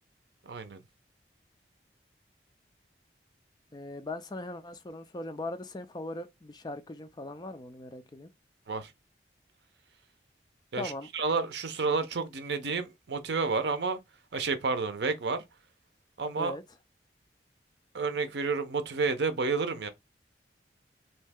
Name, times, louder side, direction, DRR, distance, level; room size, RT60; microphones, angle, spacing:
voice 1, 0.4-0.8 8.7-8.9 10.7-14.0 14.3-15.4 16.2-16.5 17.9-19.9, right 4 dB, 75° right, 0.6 m, -30 dB
voice 2, 3.7-8.3 10.8-11.1 16.4-16.6, left 2 dB, 25° left, 0.4 m, -39 dB
3.1 x 2.7 x 3.4 m
head